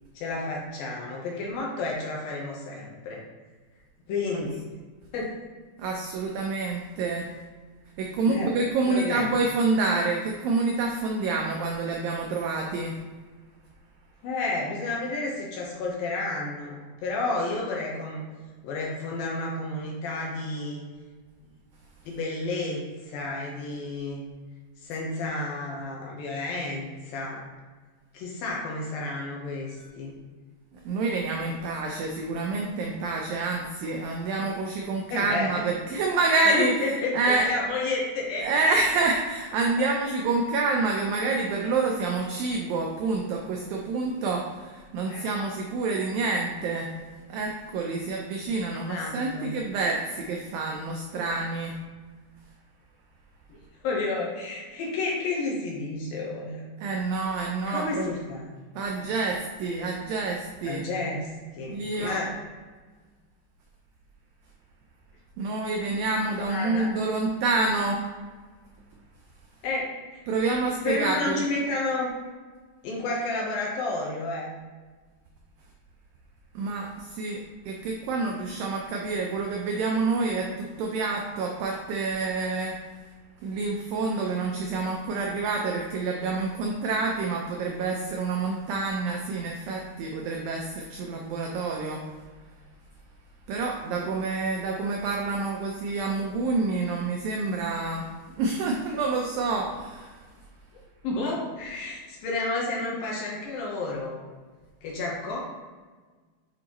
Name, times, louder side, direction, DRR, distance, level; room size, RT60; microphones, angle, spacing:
voice 1, 0.2-3.2 4.1-4.6 5.1-5.3 8.3-8.5 8.9-9.4 14.2-18.3 18.6-20.8 22.1-24.2 24.8-27.5 28.1-30.2 35.1-35.7 36.5-38.6 39.8-39.9 45.1-45.3 48.7-49.5 51.1-51.2 53.5-53.6 53.8-56.6 57.7-58.4 60.7-61.3 61.5-62.3 66.5-66.9 69.6-70.2 70.8-72.1 72.8-74.5 84.2-84.3 91.2-91.3 101.0-104.2 104.8-105.4, left 2 dB, 70° left, -2 dB, 2.5 m, -31 dB
voice 2, 5.8-7.3 8.0-13.0 29.8-29.9 30.9-36.9 37.1-37.5 38.4-47.0 47.3-51.8 56.8-58.1 58.8-60.8 61.7-62.2 65.4-68.0 70.3-71.4 76.6-82.8 83.4-92.0 93.5-100.2, right 3 dB, 90° right, 1 dB, 2.0 m, -28 dB
8.4 x 4.8 x 3.0 m, 1.4 s
omnidirectional pair, 4.9 m